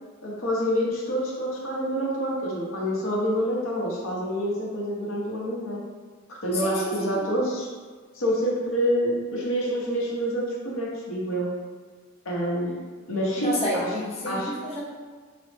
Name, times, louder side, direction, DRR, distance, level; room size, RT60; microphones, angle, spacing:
voice 1, 0.2-5.8 6.4-7.7 8.1-11.5 12.2-12.7 13.1-13.8 14.2-14.5, equal, 80° left, -4 dB, 0.8 m, -27 dB
voice 2, 6.5-7.3 13.4-14.8, equal, 30° left, -5 dB, 0.5 m, -30 dB
3.9 x 2.0 x 3.2 m, 1.5 s
head